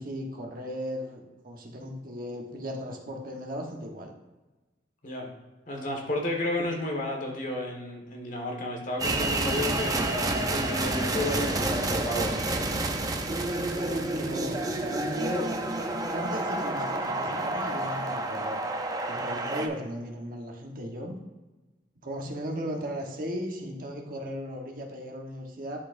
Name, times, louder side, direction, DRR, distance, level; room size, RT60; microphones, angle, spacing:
voice 1, 0.0-4.1 6.6-6.7 13.7-15.5 16.1-18.6 19.1-21.2 22.0-25.8, equal, 55° right, 0 dB, 1.2 m, -36 dB
voice 2, 5.7-12.4, left 1 dB, 45° left, 1 dB, 1.5 m, -32 dB
sound 1, 9.0-19.7, right 2 dB, 20° right, 0.6 m, -29 dB
11.5 x 4.2 x 2.6 m, 1.1 s
head